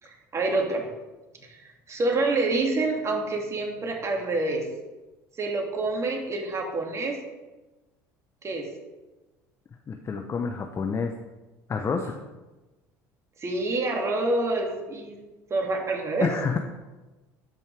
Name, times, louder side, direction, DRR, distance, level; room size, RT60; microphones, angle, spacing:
voice 1, 0.0-0.9 1.4-1.6 1.9-4.7 5.4-7.2 8.4-8.7 13.4-15.2 15.5-16.3, right 2 dB, 35° right, 2 dB, 2.5 m, -27 dB
voice 2, 9.9-11.1 11.7-12.2 16.2-16.6, left 5 dB, 35° left, 4 dB, 0.9 m, -28 dB
12.5 x 5.5 x 4.8 m, 1.1 s
supercardioid pair, 80°, 9 cm